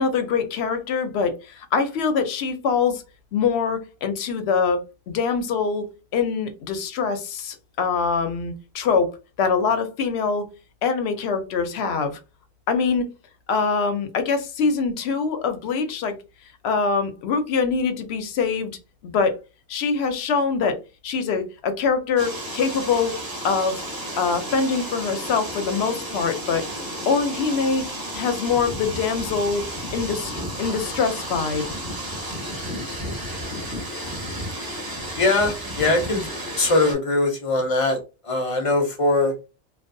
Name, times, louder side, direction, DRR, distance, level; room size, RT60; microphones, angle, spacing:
voice 1, 0.0-3.0 3.3-10.5 10.8-12.2 12.7-13.1 13.5-16.1 16.6-18.8 19.0-19.4 19.7-20.8 21.0-23.8 24.2-26.7 27.1-27.8 28.1-29.6 29.9-31.6, left 5 dB, 90° left, 0.8 m, -24 dB
sound 1, 22.2-36.9, equal, 20° right, 0.9 m, -32 dB
voice 2, 35.2-36.3 36.6-39.3, left 2 dB, 40° left, 0.6 m, -21 dB
2.6 x 2.2 x 2.5 m
omnidirectional pair, 1.0 m